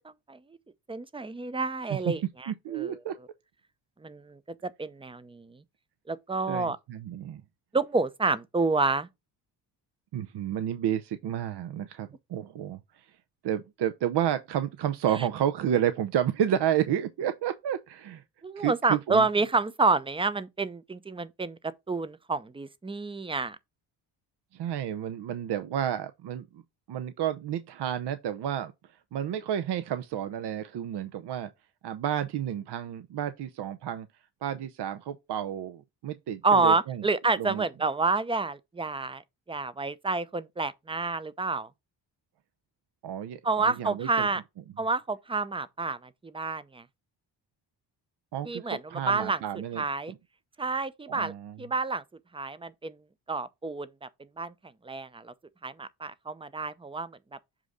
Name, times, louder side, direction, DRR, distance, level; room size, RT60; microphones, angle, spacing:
voice 1, 0.9-3.0 4.0-5.6 6.1-6.8 7.7-9.1 15.1-15.2 18.4-23.6 36.4-39.2 39.5-41.7 43.4-44.4 44.8-46.8 48.4-49.4 49.8-50.1 50.6-51.3 51.6-52.0 52.3-53.0 53.3-54.1 54.4-54.5 54.8-55.3 55.6-57.2, right 3 dB, 10° right, 0.6 m, -29 dB
voice 2, 2.5-3.1 6.5-7.4 10.1-13.1 13.4-18.2 18.6-19.3 24.5-26.6 26.9-28.7 29.1-31.5 31.8-34.1 34.4-37.0 37.4-37.6 43.0-44.3 48.3-50.2 51.1-51.6, right 10 dB, 55° right, 0.7 m, -31 dB
7.4 x 2.6 x 4.8 m
supercardioid pair, 55°, 47 cm